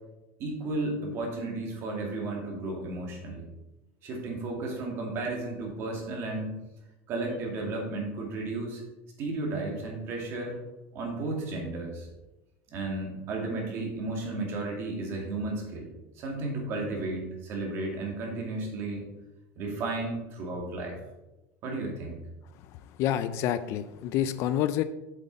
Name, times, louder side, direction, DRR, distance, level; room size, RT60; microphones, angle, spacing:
voice 1, 0.4-3.4 4.0-6.5 7.1-8.8 9.2-10.5 10.9-12.1 12.7-15.9 16.2-19.1 19.6-21.0 21.6-22.2, right 2 dB, 40° right, 0 dB, 2.3 m, -33 dB
voice 2, 22.6-24.8, left 11 dB, 45° left, 13 dB, 0.4 m, -28 dB
8.0 x 7.4 x 4.0 m, 1.0 s
cardioid pair, 165°, 7 cm